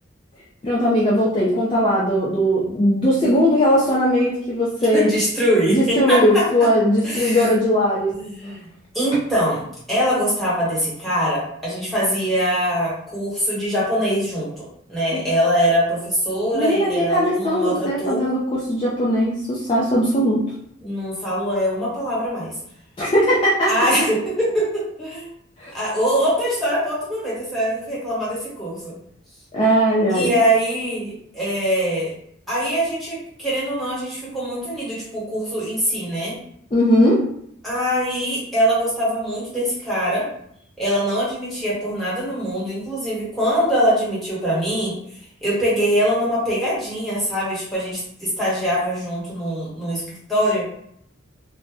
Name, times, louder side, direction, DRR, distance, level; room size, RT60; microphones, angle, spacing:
voice 1, 0.6-5.1 5.7-8.1 15.1-15.2 16.5-18.4 18.7-20.4 23.0-23.9 25.6-25.7 29.5-30.3 36.7-37.2, equal, 25° left, -7 dB, 0.4 m, -19 dB
voice 2, 4.9-6.5 7.0-7.5 8.1-8.7 8.9-9.6 9.9-14.5 14.9-18.4 20.8-22.5 23.7-25.3 25.7-28.9 30.1-32.1 32.5-36.4 37.6-40.3 40.8-45.0 45.4-50.6, equal, ahead, -8 dB, 1.1 m, -23 dB
2.6 x 2.1 x 3.5 m, 0.70 s
head